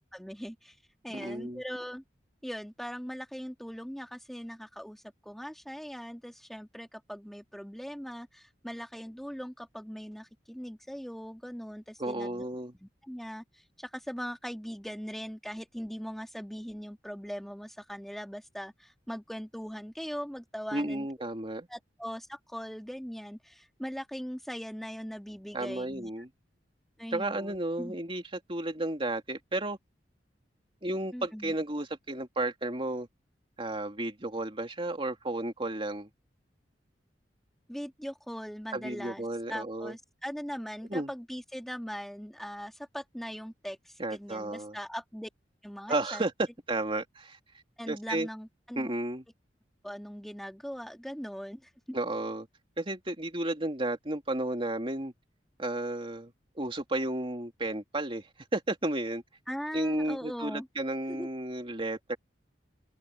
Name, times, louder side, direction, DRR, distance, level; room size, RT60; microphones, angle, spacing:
voice 1, 0.1-0.7 1.0-2.0 2.4-12.5 12.8-21.3 21.7-26.1 27.0-28.0 31.1-31.5 37.7-45.3 45.6-46.2 47.8-48.9 49.8-52.0 59.5-60.7 61.1-61.3, equal, ahead, 2.5 m, -40 dB
voice 2, 1.1-1.6 12.0-12.7 20.7-21.7 25.5-26.3 27.1-28.2 28.5-29.8 30.8-33.1 33.6-36.1 38.7-39.9 40.9-41.1 44.0-44.8 45.9-46.3 46.7-47.4 47.9-48.3 48.8-49.2 51.9-52.5 52.8-55.1 55.6-58.3 58.5-59.2 59.7-62.2, right 1 dB, 30° right, 2.9 m, -33 dB
head